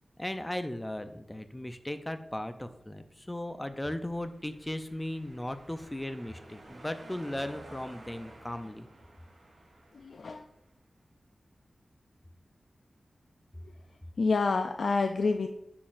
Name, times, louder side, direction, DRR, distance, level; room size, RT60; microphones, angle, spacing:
voice 1, 0.2-8.9, left 1 dB, 15° left, 9 dB, 0.5 m, -37 dB
sound 1, 3.9-10.6, right 1 dB, 65° right, 2.4 m, -53 dB
voice 2, 9.9-10.4 14.2-15.5, left 4 dB, 75° left, 6 dB, 0.3 m, -28 dB
10.0 x 3.9 x 2.5 m, 0.88 s
wide cardioid pair, 85°, 0 cm